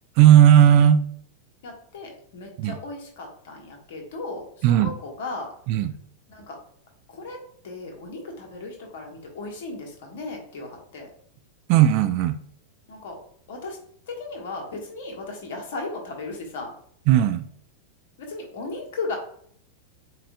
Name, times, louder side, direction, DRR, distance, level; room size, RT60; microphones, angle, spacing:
voice 1, 0.2-1.0 2.6-2.7 4.6-4.9 5.7-5.9 11.7-12.4 17.1-17.5, right 10 dB, 45° right, 0.3 m, -15 dB
voice 2, 1.6-5.5 6.3-6.6 7.1-7.4 7.6-11.1 12.9-13.2 13.5-13.8 14.1-16.7 18.2-19.2, left 3 dB, 55° left, 1.3 m, -36 dB
7.4 x 2.5 x 2.3 m
figure-of-eight pair, 90°, 0 cm